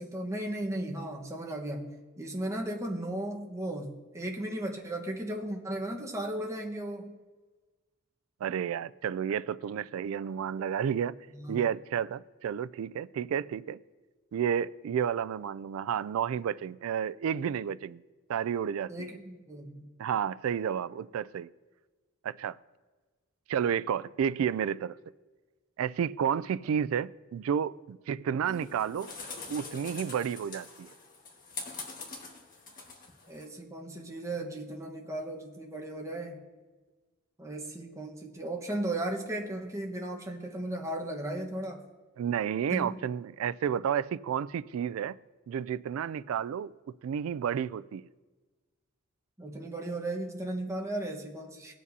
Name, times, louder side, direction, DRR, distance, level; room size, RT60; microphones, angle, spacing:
voice 1, 0.0-7.2 11.3-11.6 18.9-19.9 33.3-36.4 37.4-41.8 42.7-43.0 49.4-51.7, right 1 dB, 15° right, 1.2 m, -36 dB
voice 2, 8.4-11.2 11.5-13.8 14.3-18.0 18.3-19.2 20.0-21.5 22.2-22.6 23.5-25.0 25.8-29.1 29.5-30.9 42.2-45.2 45.5-46.7 47.0-48.1, right 8 dB, 80° right, 0.3 m, -31 dB
sound 1, 28.5-33.5, left 4 dB, 40° left, 1.6 m, -44 dB
20.0 x 7.4 x 2.8 m
head